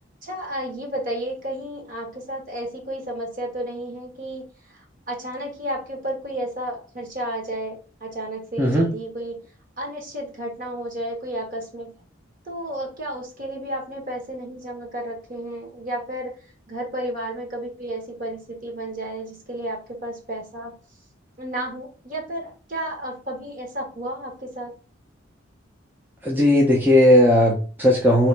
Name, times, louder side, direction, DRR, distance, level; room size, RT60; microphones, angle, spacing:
voice 1, 0.2-4.5 4.7-4.8 5.1-9.4 9.8-11.9 12.5-16.3 16.7-20.7 21.4-24.7, right 1 dB, 45° right, 0 dB, 1.3 m, -32 dB
voice 2, 8.6-8.9 26.2-28.3, left 1 dB, 10° right, -3 dB, 0.6 m, -17 dB
3.0 x 3.0 x 4.4 m, 0.37 s
head